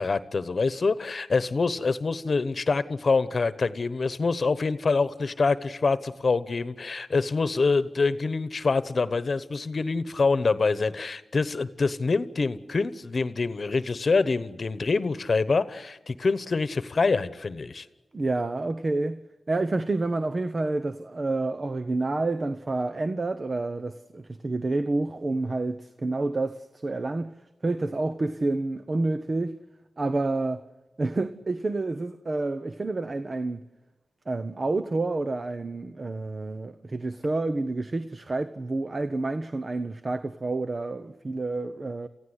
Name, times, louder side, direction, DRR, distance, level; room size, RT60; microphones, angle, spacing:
voice 1, 0.0-17.9, left 4 dB, 55° left, 1.1 m, -25 dB
voice 2, 18.1-19.2 19.5-27.3 27.6-29.6 30.0-30.6 31.0-33.6 34.3-42.1, right 2 dB, 45° right, 0.9 m, -29 dB
28.5 x 16.0 x 8.1 m
wide cardioid pair, 75°, 0 cm